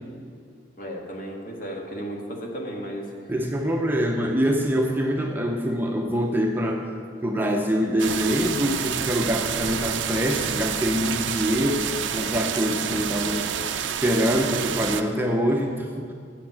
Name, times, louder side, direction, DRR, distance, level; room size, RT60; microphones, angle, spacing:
voice 1, 0.8-3.0, equal, 50° left, 0 dB, 1.6 m, -34 dB
voice 2, 3.3-6.9 7.2-13.5 13.8-16.1, equal, 10° right, 1 dB, 0.7 m, -24 dB
sound 1, 8.0-15.0, right 8 dB, 80° right, 0.5 m, -29 dB
8.3 x 7.3 x 7.5 m, 2.2 s
head